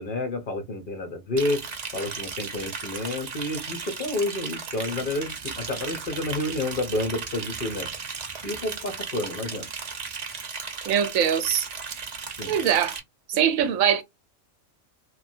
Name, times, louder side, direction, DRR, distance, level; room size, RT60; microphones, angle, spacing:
voice 1, 0.0-7.9 8.4-9.7 12.4-12.6, left 2 dB, 50° left, 0.7 m, -30 dB
Liquid, 1.4-13.0, right 5 dB, 45° right, 0.5 m, -36 dB
voice 2, 10.9-11.7 12.5-13.0 13.3-14.0, right 9 dB, 80° right, 1.1 m, -22 dB
3.0 x 2.1 x 2.6 m
omnidirectional pair, 1.4 m